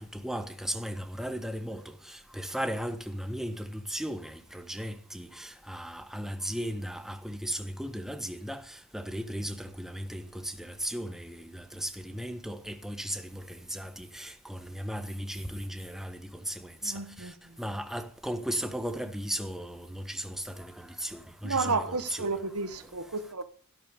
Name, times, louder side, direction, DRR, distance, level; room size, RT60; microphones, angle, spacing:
voice 1, 0.0-22.3 22.8-23.0, equal, ahead, 1.3 m, -36 dB
voice 2, 16.8-17.6 21.4-23.4, right 4 dB, 85° right, 1.4 m, -32 dB
13.0 x 12.0 x 5.3 m
head